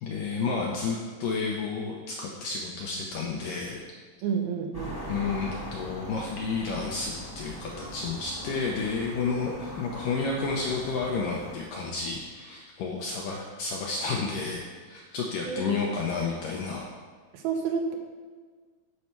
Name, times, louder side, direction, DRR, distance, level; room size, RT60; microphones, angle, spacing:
voice 1, 0.0-3.8 5.1-16.9, left 4 dB, 80° left, -1 dB, 2.0 m, -31 dB
voice 2, 4.2-5.0 15.4-15.9 17.3-18.0, right 6 dB, 75° right, 3 dB, 2.4 m, -30 dB
sound 1, 4.7-11.5, equal, 10° left, 0.9 m, -40 dB
11.5 x 5.6 x 4.5 m, 1.5 s
omnidirectional pair, 4.7 m